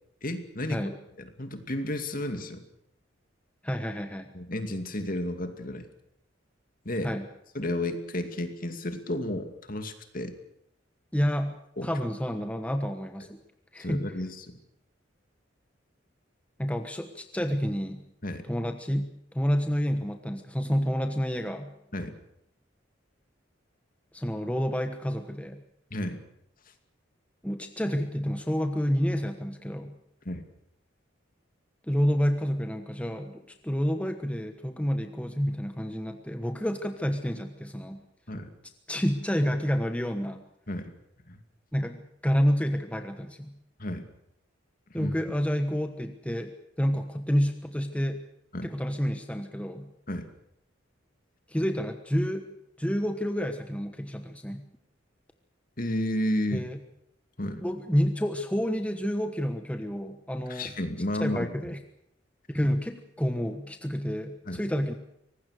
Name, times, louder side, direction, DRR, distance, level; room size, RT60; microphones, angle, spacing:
voice 1, 0.2-0.8 1.2-2.6 4.3-5.9 6.8-7.1 7.5-10.3 11.8-11.9 13.8-14.5 18.2-18.4 21.9-22.2 25.9-26.2 30.2-30.4 38.3-38.5 40.7-40.9 41.3-41.4 43.8-44.1 45.0-45.1 48.5-48.7 50.1-50.3 55.8-56.7 57.4-57.6 60.5-61.5 64.5-64.6, left 1 dB, 45° left, 7 dB, 2.5 m, -32 dB
voice 2, 3.6-4.3 7.0-7.3 11.1-11.5 11.8-13.4 13.7-14.1 16.6-18.0 18.5-19.1 19.3-21.7 24.1-25.6 27.4-29.9 31.9-38.0 38.9-40.4 41.7-43.5 44.9-46.5 46.8-48.2 48.6-49.9 51.5-52.5 52.8-54.6 56.5-56.8 57.6-60.7 61.2-61.8 62.5-64.9, equal, 5° left, 6 dB, 1.2 m, -29 dB
24.5 x 19.0 x 6.6 m, 0.75 s
head